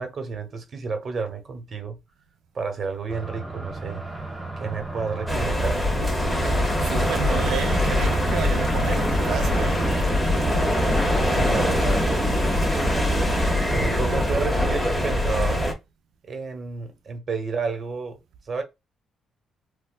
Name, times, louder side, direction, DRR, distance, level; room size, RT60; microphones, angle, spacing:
voice 1, 0.0-2.0 2.5-4.0 4.6-5.9 11.3-12.4 13.1-15.6 16.3-18.2 18.5-18.6, right 5 dB, 45° right, 1.0 m, -31 dB
sound 1, 3.1-14.3, right 1 dB, 15° right, 1.3 m, -31 dB
sound 2, 5.3-15.7, left 1 dB, 5° left, 1.3 m, -23 dB
sound 3, 6.4-13.5, left 4 dB, 60° left, 1.7 m, -41 dB
voice 2, 6.8-9.9, right 9 dB, 80° right, 0.5 m, -31 dB
4.4 x 2.3 x 2.3 m
cardioid pair, 90°, 0 cm